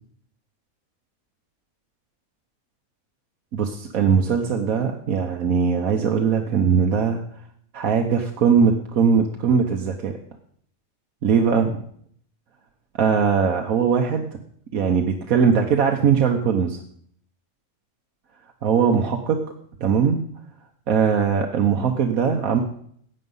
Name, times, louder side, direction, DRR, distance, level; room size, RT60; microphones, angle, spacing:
voice 1, 3.5-7.2 7.7-10.2 11.2-11.8 13.0-14.3 14.7-16.8 18.6-19.4 19.8-20.2 20.9-22.6, right 6 dB, 80° right, 3 dB, 1.5 m, -20 dB
15.5 x 9.1 x 5.5 m, 0.64 s
omnidirectional pair, 1.5 m